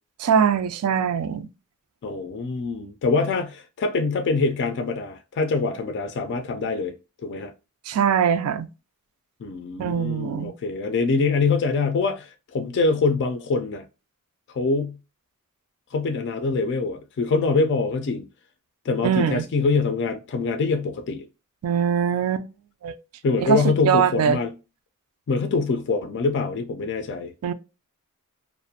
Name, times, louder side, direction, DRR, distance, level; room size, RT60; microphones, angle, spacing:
voice 1, 0.2-1.5 7.9-8.7 9.8-10.5 19.0-19.4 21.6-22.5 22.8-23.0 23.4-23.6 23.8-24.4 27.4-27.5, right 7 dB, 85° right, 0.3 m, -22 dB
voice 2, 2.0-6.9 7.2-7.5 9.4-13.8 14.5-15.0 15.9-18.3 18.9-21.3 23.2-24.5 25.3-27.3, left 4 dB, 55° left, 0.3 m, -24 dB
2.4 x 2.1 x 2.6 m
head